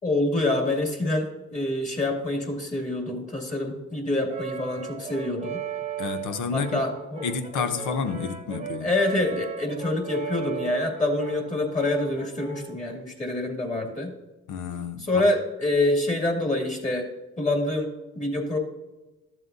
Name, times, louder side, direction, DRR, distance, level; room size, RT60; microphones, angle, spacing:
voice 1, 0.0-5.6 6.5-7.2 8.8-14.1 15.0-17.1 17.4-18.6, left 2 dB, 25° left, 2.3 m, -26 dB
Brass instrument, 4.3-12.9, right 6 dB, 20° right, 1.0 m, -36 dB
voice 2, 6.0-6.9 7.2-8.9 14.5-15.2, left 5 dB, 85° left, 0.8 m, -30 dB
13.0 x 7.5 x 2.7 m
cardioid pair, 90°, 30 cm